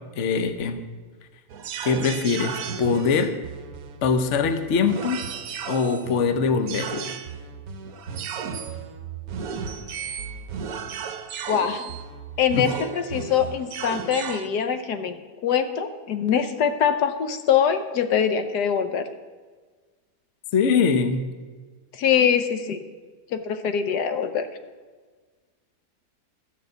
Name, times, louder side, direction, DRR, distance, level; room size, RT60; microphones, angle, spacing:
voice 1, 0.2-0.8 1.8-3.3 4.0-5.2 5.7-7.1 12.5-12.7 20.5-21.2, left 5 dB, 50° left, 9 dB, 1.1 m, -22 dB
sound 1, 1.5-14.5, right 6 dB, 65° right, 1.3 m, -34 dB
voice 2, 11.5-11.9 12.4-19.1 21.9-22.8 23.3-24.5, left 8 dB, 80° left, 9 dB, 1.4 m, -23 dB
13.5 x 6.8 x 8.0 m, 1.4 s
omnidirectional pair, 1.8 m